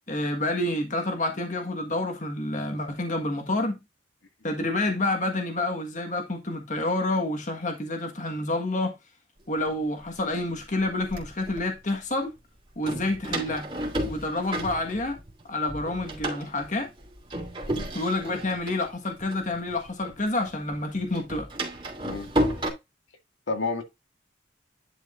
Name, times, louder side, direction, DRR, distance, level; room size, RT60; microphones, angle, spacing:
voice 1, 0.1-3.8 4.4-8.9 9.5-12.3 12.8-13.7 14.0-15.2 15.5-16.9 17.9-21.5, left 2 dB, 40° left, 1.5 m, -28 dB
Door, 9.7-9.8 10.5-11.6 12.8-15.4 15.7-20.2 20.5-22.7, right 1 dB, 25° right, 2.7 m, -32 dB
voice 2, 23.5-23.8, left 3 dB, 80° left, 2.0 m, -30 dB
10.5 x 5.1 x 2.5 m
head